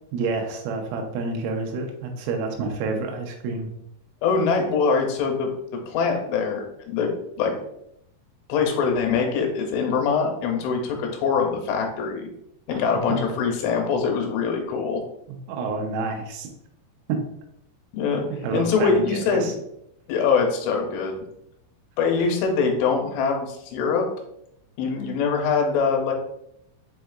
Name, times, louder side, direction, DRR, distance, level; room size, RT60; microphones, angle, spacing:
voice 1, 0.1-3.7 12.7-12.8 13.1-13.2 15.3-16.5 18.3-19.5, right 3 dB, 90° right, 3 dB, 3.3 m, -29 dB
voice 2, 4.2-5.5 5.9-7.1 7.4-7.6 8.5-12.3 12.7-15.0 17.9-18.2 18.5-19.5 20.1-21.2 22.0-24.1 24.8-26.1, left 5 dB, 85° left, 2 dB, 3.0 m, -23 dB
7.5 x 2.7 x 2.4 m, 0.79 s
omnidirectional pair, 5.6 m